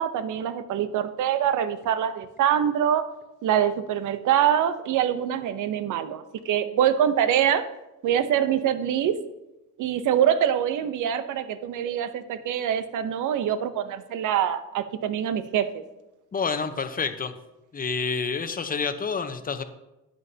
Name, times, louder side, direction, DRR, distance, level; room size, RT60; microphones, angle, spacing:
voice 1, 0.0-3.0 3.4-7.7 8.0-9.2 9.8-15.8, right 9 dB, 65° right, 12 dB, 0.8 m, -24 dB
voice 2, 16.3-17.3 17.7-19.6, left 5 dB, 25° left, 8 dB, 0.9 m, -28 dB
11.0 x 7.6 x 2.8 m, 0.94 s
supercardioid pair, 75°, 33 cm